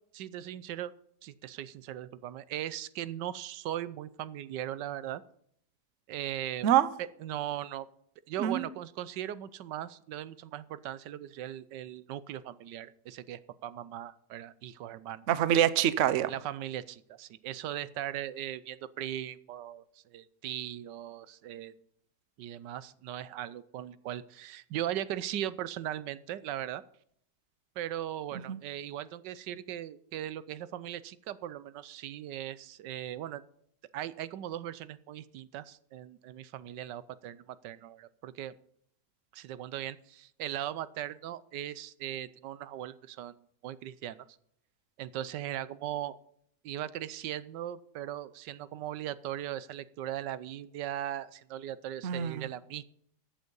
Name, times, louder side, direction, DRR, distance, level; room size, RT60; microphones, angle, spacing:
voice 1, 0.1-0.9 1.2-5.2 6.1-6.7 7.0-7.9 8.3-15.3 16.3-21.7 22.4-26.8 27.8-33.4 33.9-38.5 39.3-43.4 43.6-44.3 45.0-46.2 46.6-52.8, right 12 dB, 85° right, 1.3 m, -39 dB
voice 2, 15.3-16.3 28.5-28.6 52.0-52.5, right 11 dB, 55° right, 0.9 m, -25 dB
14.5 x 8.2 x 5.4 m
omnidirectional pair, 1.9 m